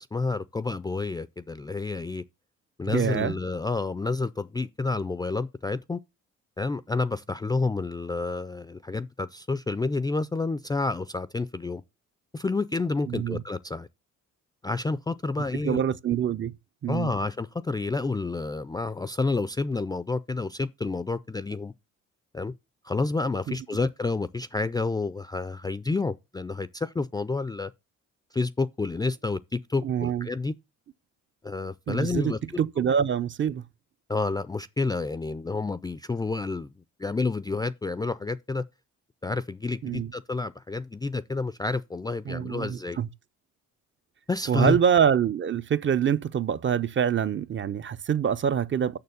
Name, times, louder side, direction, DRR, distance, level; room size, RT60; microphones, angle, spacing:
voice 1, 0.0-2.2 2.8-6.0 6.6-11.8 12.3-13.9 14.6-15.8 16.9-21.7 22.3-22.5 22.8-27.7 28.3-30.5 31.4-32.4 34.1-36.7 37.0-38.6 39.2-43.0 44.3-44.8, left 3 dB, 15° left, 0.4 m, -29 dB
voice 2, 2.9-3.3 13.1-13.4 15.6-16.6 16.8-17.1 23.5-23.6 29.8-30.3 31.9-33.7 39.8-40.1 42.3-43.1 44.5-49.0, right 8 dB, 40° right, 0.6 m, -25 dB
6.8 x 6.3 x 6.8 m
cardioid pair, 90°, 30 cm